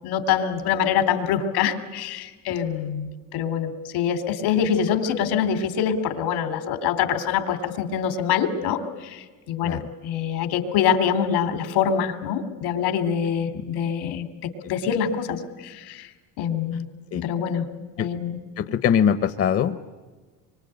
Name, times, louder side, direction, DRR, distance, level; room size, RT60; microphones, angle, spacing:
voice 1, 0.0-16.1 16.4-16.9 17.2-17.7 18.0-18.4, left 8 dB, 80° left, 10 dB, 3.1 m, -25 dB
voice 2, 18.6-19.8, left 8 dB, 35° left, 11 dB, 0.9 m, -22 dB
26.5 x 24.0 x 9.0 m, 1.3 s
cardioid pair, 160°, 39 cm